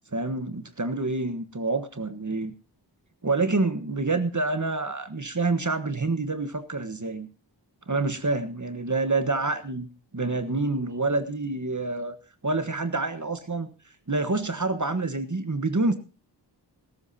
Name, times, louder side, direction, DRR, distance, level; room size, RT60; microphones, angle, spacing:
voice 1, 0.1-2.5 3.2-7.3 7.9-9.9 10.1-12.2 12.4-13.7 14.1-16.0, right 3 dB, 45° right, 9 dB, 1.3 m, -27 dB
20.5 x 12.5 x 2.8 m, 0.33 s
wide cardioid pair, 45°, 43 cm